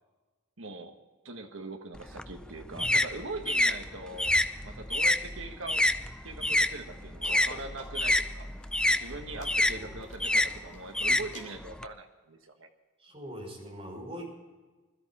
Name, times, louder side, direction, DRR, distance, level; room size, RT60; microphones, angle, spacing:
voice 1, 0.6-1.0 1.2-5.8 6.2-8.5 9.0-12.7, right 3 dB, 85° right, 5 dB, 1.5 m, -42 dB
sound 1, 1.9-6.7 7.0-11.8, left 1 dB, 5° left, 0.4 m, -27 dB
sound 2, 6.7-6.8 7.2-8.2 8.6-8.9 9.4-9.7 10.0-10.4 10.7-11.0 11.3-11.6, left 3 dB, 40° left, 3.1 m, -50 dB
voice 2, 13.0-14.4, equal, 30° right, 0 dB, 5.0 m, -42 dB
21.5 x 13.5 x 4.2 m, 1.3 s
head